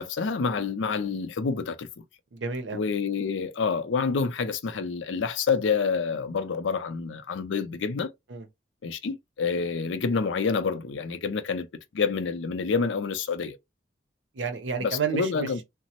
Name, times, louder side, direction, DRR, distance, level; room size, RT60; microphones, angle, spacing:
voice 1, 0.0-2.0 2.7-8.1 8.8-11.7 11.9-13.6 14.8-15.6, left 5 dB, 90° left, 0.5 m, -28 dB
voice 2, 2.3-2.8 8.3-8.5 14.3-15.6, right 6 dB, 85° right, 0.7 m, -31 dB
3.0 x 2.0 x 2.8 m
head